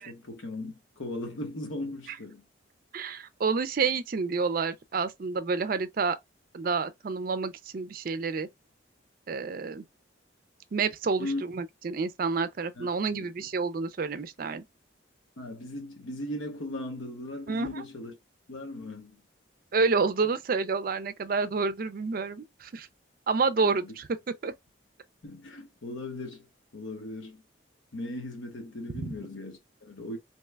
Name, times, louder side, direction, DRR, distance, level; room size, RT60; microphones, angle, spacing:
voice 1, 0.0-2.4 11.2-11.4 12.8-13.3 15.4-18.1 18.5-19.2 23.6-23.9 25.2-26.5 26.7-27.4 27.9-30.2, left 1 dB, 80° left, 0.9 m, -38 dB
voice 2, 2.9-6.2 6.5-8.5 9.3-9.8 10.7-14.6 17.5-17.8 19.7-22.9 23.3-24.1 24.4-24.5 28.9-29.1, right 4 dB, 45° right, 0.4 m, -29 dB
2.9 x 2.2 x 3.2 m
head